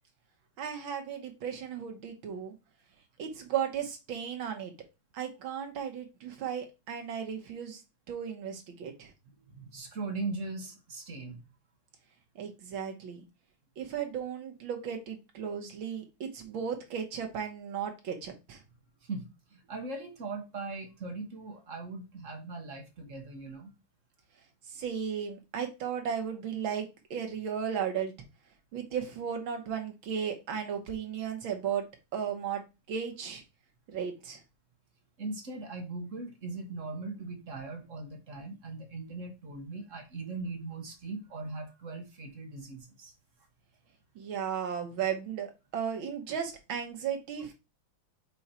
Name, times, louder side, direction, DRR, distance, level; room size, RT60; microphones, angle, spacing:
voice 1, 0.6-2.5 3.2-4.7 5.1-7.8 8.1-9.1 12.4-13.2 13.8-18.6 24.7-28.1 28.7-31.9 32.1-32.6 32.9-33.4 33.9-34.4 44.2-47.5, right 8 dB, 75° right, 2.0 m, -35 dB
voice 2, 9.5-11.4 19.0-19.2 19.5-23.7 35.2-43.1, right 3 dB, 45° right, 1.4 m, -39 dB
5.5 x 4.6 x 4.3 m
omnidirectional pair, 2.2 m